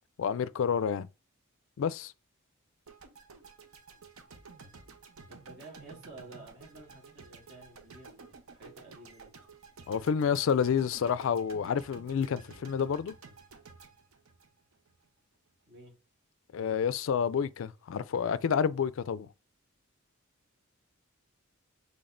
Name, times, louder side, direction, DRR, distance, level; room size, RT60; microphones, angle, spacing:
voice 1, 0.2-1.1 1.8-2.1 9.9-13.1 16.5-19.3, left 7 dB, 60° left, 0.3 m, -29 dB
sound 1, 2.9-15.1, right 4 dB, 75° right, 0.8 m, -52 dB
voice 2, 5.3-9.3 15.7-15.9, right 2 dB, 50° right, 2.4 m, -51 dB
5.9 x 3.5 x 2.5 m
head